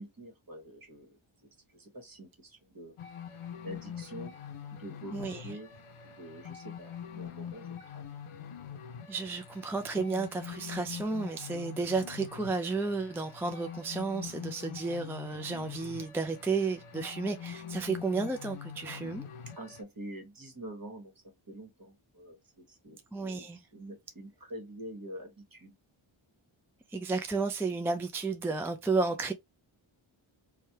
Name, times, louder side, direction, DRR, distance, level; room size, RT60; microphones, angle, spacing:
voice 1, 0.0-2.9 3.6-4.3 4.8-5.7 6.0-8.0 19.6-25.7, right 1 dB, 45° right, 1.3 m, -46 dB
sound 1, 3.0-19.8, left 8 dB, 90° left, 0.6 m, -44 dB
voice 2, 5.1-5.5 9.1-19.3 23.1-23.6 26.9-29.3, right 4 dB, 5° right, 0.3 m, -32 dB
3.2 x 2.2 x 2.8 m
wide cardioid pair, 60°, 49 cm